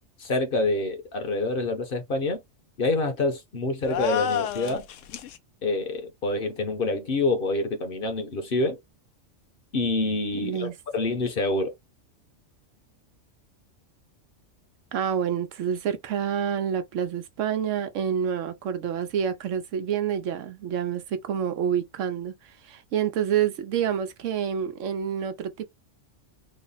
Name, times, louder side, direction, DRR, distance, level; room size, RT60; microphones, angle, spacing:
voice 1, 0.2-2.4 2.8-4.9 5.6-8.8 9.7-11.7, left 2 dB, 50° left, 0.9 m, -27 dB
sound 1, 3.8-5.4, left 9 dB, 85° left, 0.9 m, -30 dB
voice 2, 10.4-10.7 14.9-25.7, right 8 dB, 80° right, 1.0 m, -28 dB
3.2 x 2.1 x 3.8 m
omnidirectional pair, 1.3 m